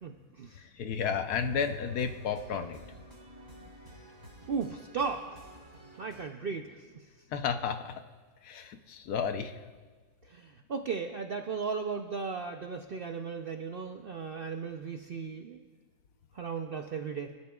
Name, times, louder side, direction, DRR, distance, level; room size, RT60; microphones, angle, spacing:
voice 1, 0.0-0.6 4.5-5.2 6.0-7.0 10.3-15.6 16.3-17.3, right 5 dB, 60° right, 4 dB, 0.6 m, -36 dB
voice 2, 0.6-2.8 7.3-8.0 8.4-9.5, left 6 dB, 75° left, 7 dB, 1.3 m, -32 dB
sound 1, 1.3-6.3, right 1 dB, 30° right, 2.8 m, -52 dB
24.0 x 11.5 x 2.4 m, 1.4 s
omnidirectional pair, 1.7 m